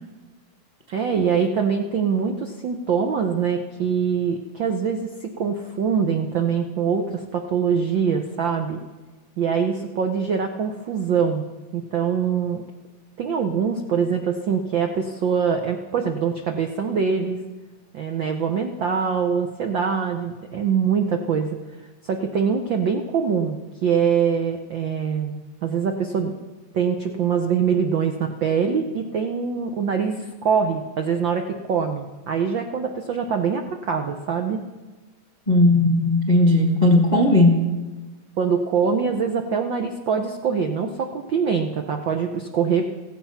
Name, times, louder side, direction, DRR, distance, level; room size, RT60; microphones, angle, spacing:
voice 1, 0.9-8.8 9.4-11.4 11.7-12.6 13.2-17.4 17.9-21.6 22.0-25.4 25.6-26.3 26.7-34.6 38.4-42.9, right 6 dB, 75° right, 4 dB, 1.1 m, -23 dB
voice 2, 35.5-37.7, left 1 dB, 45° left, 1 dB, 0.5 m, -17 dB
16.0 x 15.0 x 5.7 m, 1.2 s
omnidirectional pair, 3.4 m